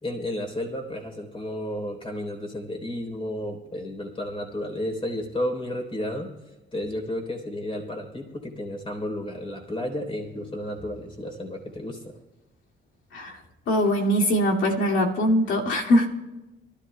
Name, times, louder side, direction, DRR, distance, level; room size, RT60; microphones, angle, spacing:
voice 1, 0.0-6.3 6.7-12.2, left 1 dB, 25° left, 3 dB, 3.5 m, -32 dB
voice 2, 13.7-16.1, equal, 75° left, -1 dB, 2.3 m, -22 dB
24.0 x 13.5 x 2.2 m, 1.1 s
cardioid pair, 90°, 20 cm